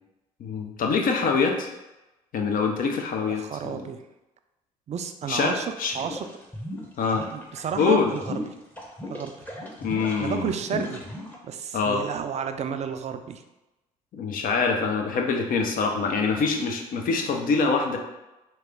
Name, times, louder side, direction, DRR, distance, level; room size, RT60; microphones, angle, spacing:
voice 1, 0.4-1.7 2.3-3.9 5.3-5.9 7.0-7.2 7.8-8.1 9.8-10.8 11.7-12.0 14.1-18.0, left 5 dB, 50° left, 2 dB, 0.7 m, -25 dB
voice 2, 3.3-4.0 4.9-6.3 7.3-8.5 9.1-9.3 10.2-11.0 11.4-13.4, right 7 dB, 35° right, 8 dB, 0.4 m, -31 dB
sound 1, 5.9-11.4, left 1 dB, 10° left, 0.9 m, -36 dB
3.1 x 2.9 x 3.5 m, 1.0 s
figure-of-eight pair, 50°, 19 cm